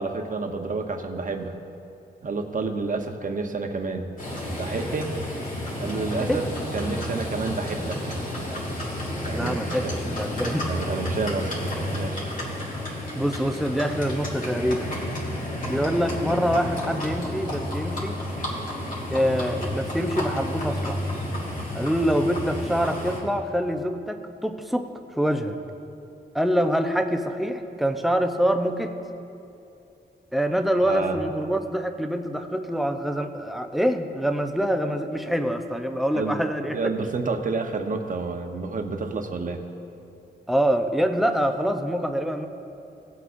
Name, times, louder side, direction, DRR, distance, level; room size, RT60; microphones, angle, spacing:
voice 1, 0.0-1.6 2.2-4.1 4.5-5.1 5.8-6.4 6.7-8.0 9.2-9.9 10.7-11.5 11.9-12.2 30.8-31.2 36.1-39.6, right 3 dB, 45° right, 5 dB, 0.9 m, -29 dB
Livestock farm animals working animals, 4.2-23.2, left 1 dB, 45° left, 2.2 m, -31 dB
voice 2, 9.3-10.7 13.1-14.9 15.7-18.2 19.1-21.0 21.7-24.9 25.1-25.6 26.3-29.0 30.3-36.9 40.5-42.5, equal, ahead, 6 dB, 0.6 m, -25 dB
18.0 x 8.0 x 2.6 m, 2.8 s
wide cardioid pair, 120°, 19 cm